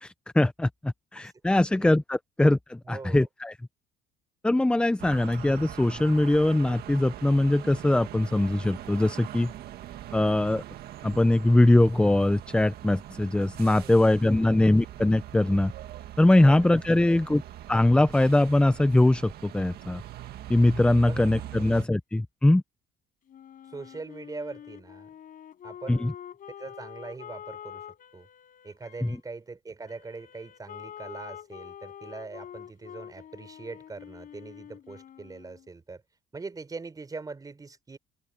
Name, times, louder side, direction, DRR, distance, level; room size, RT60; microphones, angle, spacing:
voice 1, 0.0-3.5 4.4-9.5 10.1-10.6 11.0-15.7 16.2-17.4 17.7-20.0 20.5-22.6 25.9-26.1 29.0-29.2, left 1 dB, 5° left, 0.5 m, -22 dB
voice 2, 2.8-3.3 13.7-14.1 16.4-16.8 21.0-21.5 23.7-25.1 25.6-26.1 26.6-27.9 28.1-28.3 28.6-36.0 36.3-38.0, right 3 dB, 20° right, 3.9 m, -42 dB
sound 1, 5.0-21.9, right 12 dB, 70° right, 1.9 m, -42 dB
Wind instrument woodwind instrument, 23.3-29.2 29.8-35.7, left 9 dB, 55° left, 5.2 m, -46 dB
open air
cardioid pair, 110°, 17 cm